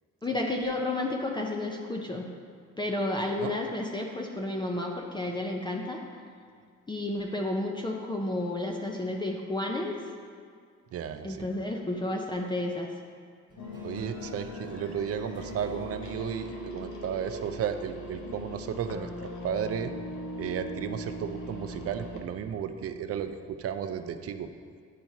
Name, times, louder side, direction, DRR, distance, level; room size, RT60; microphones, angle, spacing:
voice 1, 0.2-2.3 2.8-6.0 6.9-10.0 11.2-12.9, left 2 dB, 15° left, 0 dB, 0.5 m, -31 dB
voice 2, 10.9-11.5 13.8-19.1 19.4-19.9 20.4-24.5, right 8 dB, 50° right, 8 dB, 0.5 m, -34 dB
sound 1, 13.5-18.4, right 2 dB, 15° right, 1.3 m, -51 dB
sound 2, 13.6-22.2, equal, 75° left, 1.0 m, -40 dB
10.0 x 4.4 x 2.8 m, 2.2 s
cardioid pair, 90°, 30 cm